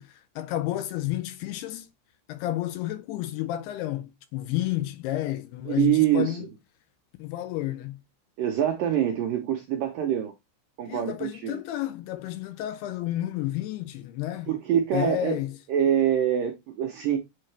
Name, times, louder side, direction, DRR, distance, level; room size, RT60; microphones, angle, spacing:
voice 1, 0.0-1.9 2.3-6.5 7.2-8.0 10.9-14.5 14.9-15.6, left 15 dB, 80° left, 2.4 m, -31 dB
voice 2, 5.7-6.4 8.4-10.3 10.8-11.6 14.5-15.4 15.7-17.2, right 10 dB, 80° right, 2.0 m, -25 dB
8.6 x 3.7 x 3.3 m
omnidirectional pair, 5.0 m